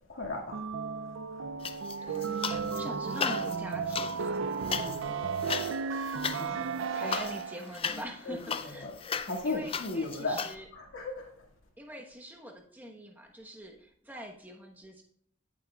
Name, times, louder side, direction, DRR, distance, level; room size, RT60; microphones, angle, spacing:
voice 1, 0.1-0.6 1.3-1.5 2.6-2.7 4.8-5.5 6.3-6.6 7.0-7.2 8.3-8.4 8.8-8.9 9.3-10.4 10.7-11.3, left 2 dB, 70° left, -1 dB, 2.0 m, -36 dB
sound 1, 0.5-7.8, right 5 dB, 60° right, 0.4 m, -34 dB
sound 2, 1.6-2.8 3.1-10.5, left 6 dB, 25° left, 0.4 m, -36 dB
voice 2, 2.0-4.4 6.4-8.9 9.4-10.7 11.8-15.0, equal, 10° right, 1 dB, 1.1 m, -44 dB
16.0 x 7.4 x 2.3 m, 0.64 s
head